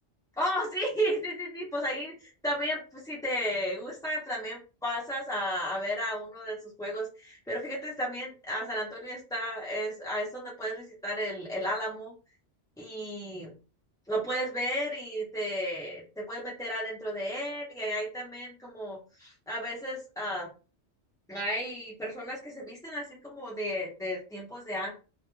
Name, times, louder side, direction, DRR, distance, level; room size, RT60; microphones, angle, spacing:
voice 1, 0.4-12.1 12.8-13.5 14.1-20.5 21.3-25.0, equal, 5° left, -5 dB, 0.3 m, -33 dB
2.2 x 2.1 x 3.0 m, 0.34 s
omnidirectional pair, 1.2 m